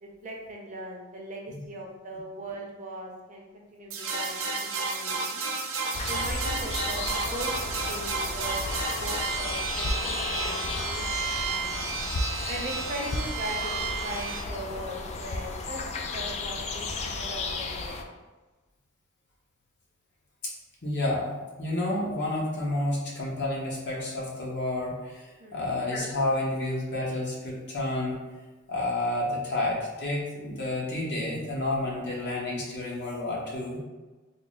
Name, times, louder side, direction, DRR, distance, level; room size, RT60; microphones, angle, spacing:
voice 1, 0.0-5.4 6.1-7.5 7.9-8.6 9.0-12.0 12.5-15.8 16.1-18.0 25.4-25.7, right 1 dB, 40° right, -1 dB, 0.6 m, -39 dB
sound 1, 3.9-14.4, right 4 dB, 85° right, 0.6 m, -32 dB
sound 2, 5.9-18.0, left 3 dB, 35° left, 0.3 m, -33 dB
voice 2, 20.8-28.2 28.7-33.8, left 1 dB, 55° left, -4 dB, 1.0 m, -30 dB
3.7 x 2.0 x 3.9 m, 1.2 s
head